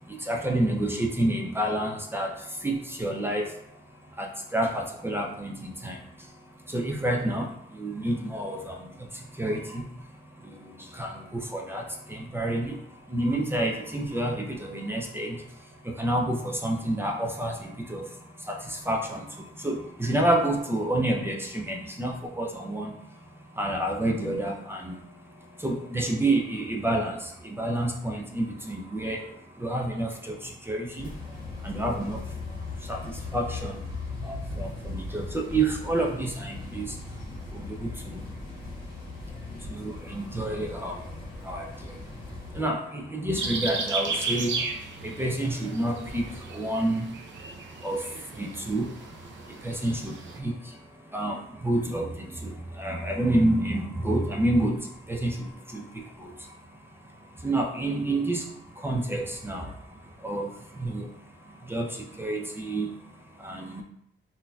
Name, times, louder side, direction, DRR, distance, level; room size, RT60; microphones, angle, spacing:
voice 1, 0.3-2.3 2.6-3.4 4.2-6.0 6.7-7.5 7.8-8.8 9.4-9.8 11.0-11.2 11.5-11.8 12.1-12.7 13.1-15.4 16.0-18.1 18.5-19.2 19.6-22.9 23.6-24.9 25.6-29.3 29.6-30.4 30.7-31.1 31.6-32.2 32.9-33.8 34.3-36.9 37.5-38.2 39.7-41.0 41.5-41.6 42.5-44.5 45.0-46.3 46.5-47.1 47.8-48.0 48.4-48.9 49.6-50.1 50.4-50.5 51.1-51.4 51.6-52.1 52.4-52.5 52.8-54.8 55.1-55.4 55.7-55.8 56.2-56.3 57.4-58.4 58.8-59.7 60.2-60.5 60.8-61.1 61.7-61.9 62.2-62.9 63.4-63.8, right 1 dB, 10° right, 0 dB, 0.4 m, -28 dB
sound 1, 31.0-42.6 46.0-46.4, left 3 dB, 50° left, 1.4 m, -38 dB
sound 2, 43.4-50.4, right 4 dB, 70° right, 0.5 m, -35 dB
3.9 x 2.6 x 2.2 m, 0.75 s
wide cardioid pair, 140°, 20 cm